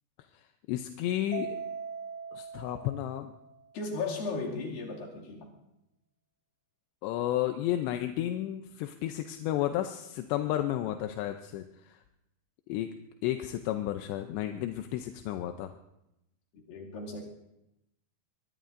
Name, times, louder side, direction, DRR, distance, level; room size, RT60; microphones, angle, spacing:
voice 1, 0.7-1.6 2.3-3.3 7.0-12.0 12.7-12.9 13.2-15.7, left 13 dB, 85° left, 6 dB, 2.8 m, -32 dB
Mallet percussion, 1.3-3.8, right 6 dB, 75° right, 2.4 m, -40 dB
voice 2, 3.7-5.5 16.5-17.2, left 3 dB, 60° left, -2 dB, 4.0 m, -36 dB
22.5 x 22.0 x 2.6 m, 0.88 s
omnidirectional pair, 5.0 m